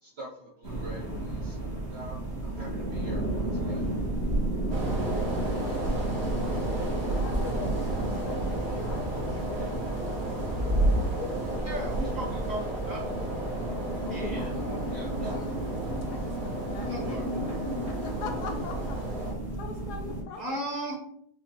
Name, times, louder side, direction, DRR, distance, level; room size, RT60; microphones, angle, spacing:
voice 1, 0.0-3.9, right 1 dB, 75° right, -3 dB, 0.5 m, -46 dB
sound 1, 0.6-20.2, right 1 dB, 40° right, 1.5 m, -32 dB
sound 2, 4.7-19.3, right 1 dB, 60° right, 2.2 m, -34 dB
voice 2, 7.1-11.4 12.6-12.8 14.0-15.5 16.1-20.6, left 4 dB, 75° left, 5 dB, 1.0 m, -43 dB
voice 3, 11.7-13.0 14.1-14.4 14.9-15.4 16.9-17.5 20.4-21.0, right 1 dB, 25° right, -5 dB, 1.6 m, -36 dB
5.7 x 2.6 x 2.9 m, 0.69 s
omnidirectional pair, 1.9 m